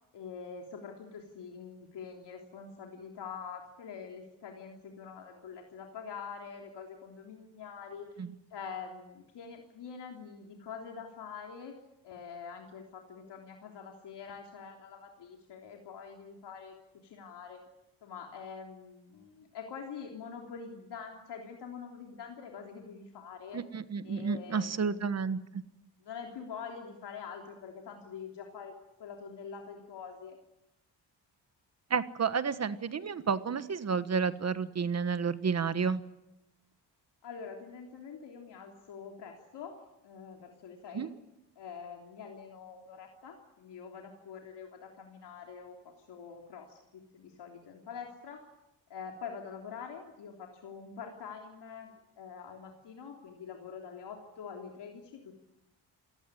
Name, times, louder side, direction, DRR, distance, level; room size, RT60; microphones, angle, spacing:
voice 1, 0.1-8.2 8.5-11.8 12.0-16.7 17.0-17.6 18.0-23.6 24.0-25.1 26.0-28.7 29.0-30.4 37.2-39.8 40.0-41.1 41.5-48.5 48.9-55.4, left 6 dB, 70° left, 1 dB, 3.4 m, -45 dB
voice 2, 23.5-25.6 31.9-36.0 40.9-41.1, right 6 dB, 35° right, 12 dB, 1.4 m, -31 dB
28.5 x 17.0 x 10.0 m, 0.93 s
cardioid pair, 145°, 42 cm